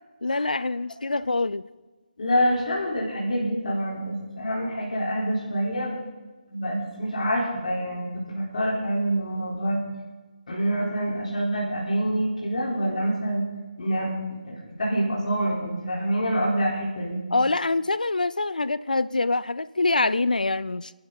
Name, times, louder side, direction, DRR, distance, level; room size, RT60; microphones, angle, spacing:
voice 1, 0.2-1.7 17.3-20.9, left 3 dB, 85° left, 17 dB, 0.5 m, -25 dB
voice 2, 2.2-6.0 6.5-9.8 10.5-13.4 13.8-17.2, equal, 60° left, -4 dB, 4.1 m, -26 dB
26.0 x 12.0 x 4.0 m, 1.3 s
figure-of-eight pair, 150°, 4 cm